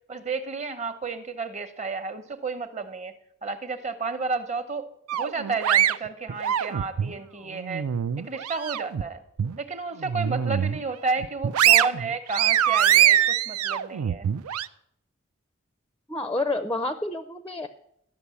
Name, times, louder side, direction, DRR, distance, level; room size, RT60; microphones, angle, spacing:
voice 1, 0.1-3.1 3.4-4.9 5.1-7.8 8.2-9.2 9.6-14.3, right 4 dB, 30° right, 10 dB, 0.9 m, -32 dB
sound 1, 5.1-7.1 7.6-9.0 9.4-9.5 10.0-10.8 11.2-14.7, right 10 dB, 90° right, 0.4 m, -23 dB
voice 2, 16.1-17.7, left 2 dB, 10° left, 11 dB, 0.4 m, -29 dB
12.5 x 6.1 x 8.3 m, 0.73 s
head